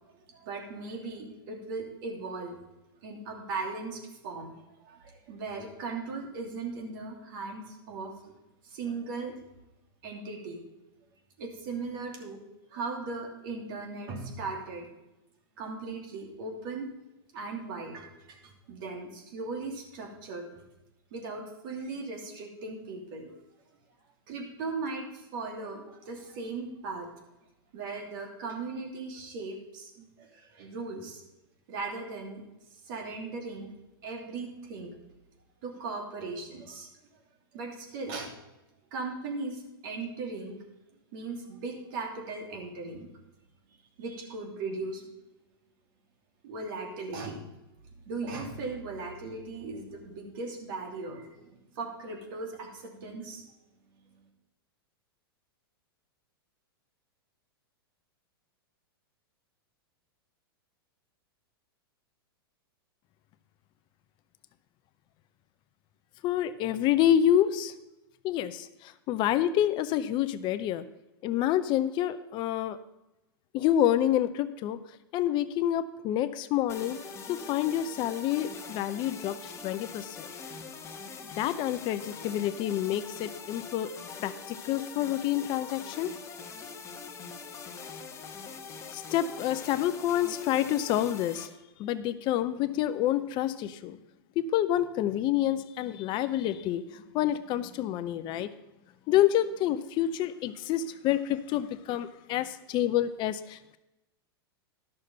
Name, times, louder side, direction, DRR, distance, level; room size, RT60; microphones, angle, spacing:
voice 1, 0.3-2.6 3.0-4.5 4.8-8.1 8.6-9.4 10.0-10.6 11.4-12.4 12.7-14.9 15.6-16.9 17.3-20.5 21.1-23.3 24.3-27.1 27.7-31.2 31.7-32.4 32.9-33.7 34.0-34.9 35.6-36.9 37.5-38.3 38.9-40.6 41.1-43.1 44.0-45.0 46.4-47.4 48.0-53.4, right 3 dB, 60° right, 2 dB, 2.8 m, -38 dB
voice 2, 66.2-67.7 68.2-70.9 71.2-72.8 73.5-74.8 75.1-77.0 77.3-80.3 81.2-83.9 84.2-86.2 88.9-91.5 91.8-94.0 94.4-98.5 99.1-103.8, left 11 dB, 35° left, 13 dB, 0.5 m, -28 dB
sound 1, 76.7-91.5, left 5 dB, 20° left, 1.1 m, -43 dB
12.0 x 6.5 x 5.5 m, 0.95 s
hypercardioid pair, 120°, 13 cm